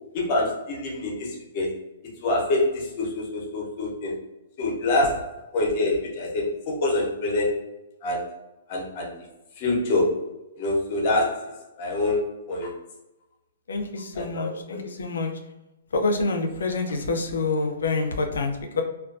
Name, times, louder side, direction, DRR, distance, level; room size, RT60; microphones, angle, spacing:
voice 1, 0.1-1.7 2.2-4.1 4.6-7.6 8.0-8.3 8.7-9.1 9.6-10.2 10.6-12.7 14.2-14.8, left 2 dB, 45° left, -1 dB, 0.8 m, -26 dB
voice 2, 13.7-15.3 15.9-18.8, left 3 dB, 85° left, 5 dB, 0.4 m, -27 dB
2.3 x 2.2 x 2.4 m, 0.97 s
hypercardioid pair, 140°, 0 cm